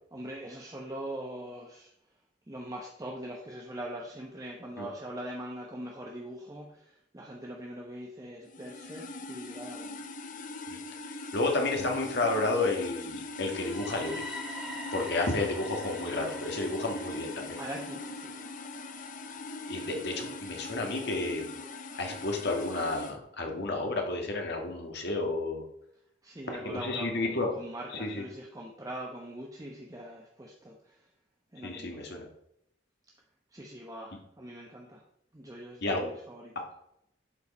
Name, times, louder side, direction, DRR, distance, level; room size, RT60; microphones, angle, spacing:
voice 1, 0.1-1.9 2.5-10.0 17.6-18.5 26.2-31.0 31.5-32.3 33.5-35.0 35.3-36.5, right 1 dB, 20° right, -1 dB, 0.9 m, -42 dB
sound 1, 8.5-23.2, left 2 dB, 45° left, 0.7 m, -41 dB
voice 2, 11.3-14.2 14.9-17.6 19.7-21.5 22.0-25.6 26.5-27.5 27.9-28.2 31.6-32.2 35.8-36.1, left 2 dB, 60° left, 2 dB, 1.8 m, -31 dB
sound 2, 13.3-21.2, equal, ahead, 2.4 m, -46 dB
11.0 x 4.8 x 4.2 m, 0.77 s
head